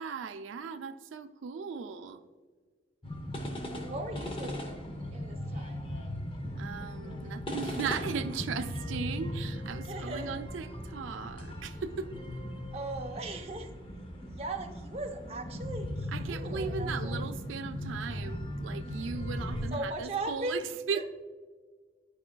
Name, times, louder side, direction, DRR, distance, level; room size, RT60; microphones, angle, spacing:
voice 1, 0.0-2.2 6.6-12.1 16.1-21.0, right 6 dB, 90° right, 0.4 m, -37 dB
sound 1, 3.0-19.7, equal, 25° left, 0.7 m, -38 dB
voice 2, 3.5-6.0 9.9-10.4 12.7-13.7 14.2-17.2 19.7-20.7 20.9-21.0, right 2 dB, 30° right, 0.7 m, -39 dB
10.5 x 4.9 x 2.2 m
head